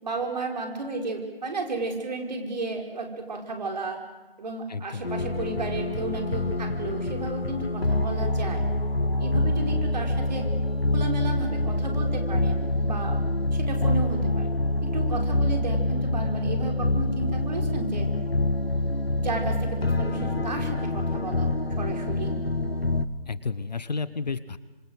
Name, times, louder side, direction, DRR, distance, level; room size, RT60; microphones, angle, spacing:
voice 1, 0.0-4.0 4.4-8.6 9.2-10.4 10.9-13.2 13.5-14.5 14.9-18.1 19.2-22.3, right 3 dB, 45° right, 3 dB, 5.2 m, -33 dB
voice 2, 4.7-5.1 23.3-24.6, left 4 dB, 45° left, 15 dB, 1.2 m, -32 dB
sound 1, 5.0-23.0, left 2 dB, 80° left, 2.0 m, -26 dB
27.0 x 26.5 x 8.0 m, 1.2 s
figure-of-eight pair, 155°, 29 cm